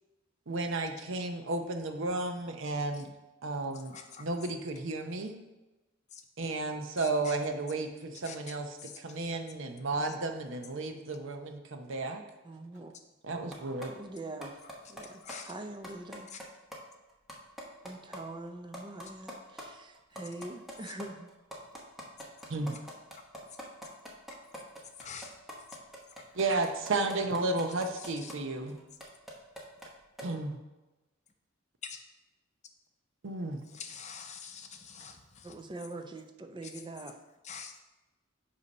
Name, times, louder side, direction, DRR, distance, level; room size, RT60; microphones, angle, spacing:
voice 1, 0.5-3.1 3.4-5.4 6.4-8.7 9.0-12.2 13.2-13.9 22.5-22.8 26.4-28.8 30.2-30.6 33.2-33.6, right 2 dB, 65° right, 6 dB, 0.7 m, -33 dB
voice 2, 3.7-4.3 6.1-6.2 7.0-7.4 8.2-8.5 8.8-9.0 15.0-15.5 16.3-16.4 22.4-22.5 25.0-25.3 26.2-26.3 28.0-28.3 31.8-32.0 33.6-35.6 36.6-36.7 37.4-37.8, left 6 dB, 35° left, 5 dB, 0.6 m, -46 dB
voice 3, 12.4-12.9 13.9-14.6 14.9-16.3 17.9-21.3 35.4-37.2, right 2 dB, 25° right, 5 dB, 0.5 m, -43 dB
sound 1, 13.5-13.9 14.2-15.0 15.3-15.4 15.6-16.4 16.7-16.8 17.1-18.2 18.5-18.6 18.7-19.6 19.9-28.3 28.8-29.9 30.2-30.3, equal, ahead, 1.0 m, -43 dB
8.1 x 2.8 x 5.3 m, 1.1 s
head